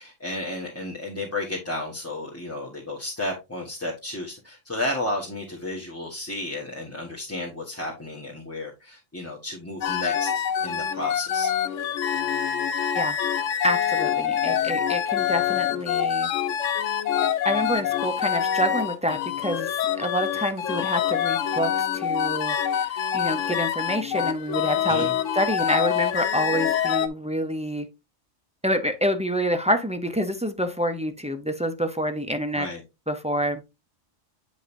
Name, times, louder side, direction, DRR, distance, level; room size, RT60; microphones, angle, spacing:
voice 1, 0.0-11.5 24.9-25.1 32.5-32.8, left 1 dB, 10° left, 1.3 m, -32 dB
sound 1, 9.8-27.1, left 9 dB, 85° left, 1.0 m, -25 dB
voice 2, 13.6-16.3 17.4-25.1 25.3-27.9 28.6-32.7 33.1-33.6, equal, 10° right, 0.4 m, -27 dB
8.6 x 5.2 x 2.6 m
omnidirectional pair, 1.3 m